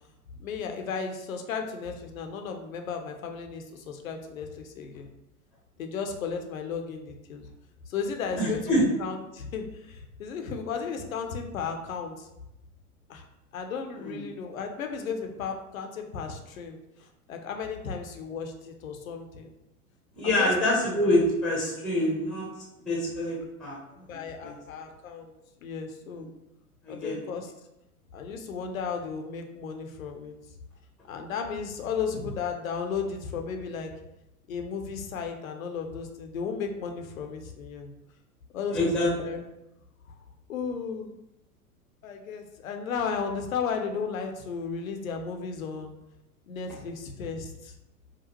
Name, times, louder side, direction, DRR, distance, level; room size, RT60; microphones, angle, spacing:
voice 1, 0.4-5.1 5.8-7.4 7.9-8.6 9.0-12.3 13.1-13.2 13.5-16.8 17.3-19.5 20.4-20.5 21.0-21.1 22.9-23.0 24.1-25.3 25.6-26.3 26.9-27.5 28.1-30.3 31.1-33.9 34.5-37.9 38.5-39.4 40.5-41.1 42.0-45.9 46.5-47.7, left 6 dB, 65° left, 4 dB, 0.7 m, -34 dB
voice 2, 8.4-8.8 14.0-14.3 20.1-22.5 22.9-24.5 26.1-26.3 26.8-27.2 38.7-39.1, left 1 dB, ahead, -4 dB, 0.9 m, -26 dB
5.0 x 2.4 x 2.8 m, 0.90 s
figure-of-eight pair, 95°, 45 cm